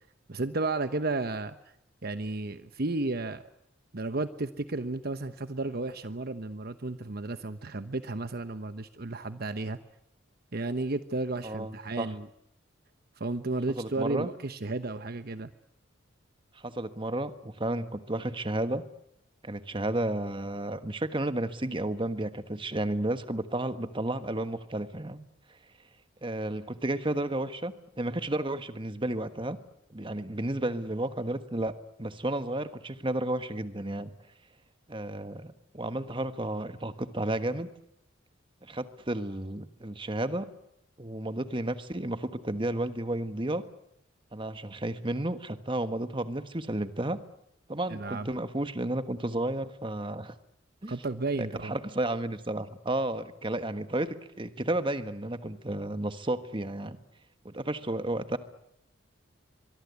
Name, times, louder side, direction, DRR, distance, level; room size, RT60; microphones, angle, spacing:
voice 1, 0.3-1.6 2.0-3.4 3.9-9.8 10.5-12.3 13.2-15.5 47.9-48.3 50.9-51.7, right 2 dB, 50° right, 11 dB, 1.0 m, -33 dB
voice 2, 11.4-12.1 13.8-14.3 16.5-18.8 19.4-25.2 26.2-29.6 29.9-34.1 34.9-37.7 38.6-40.5 41.0-43.6 44.3-47.2 47.7-50.3 50.8-50.9 51.4-57.0 57.4-58.4, right 1 dB, 25° right, 10 dB, 1.4 m, -32 dB
24.0 x 23.5 x 8.3 m, 0.78 s
head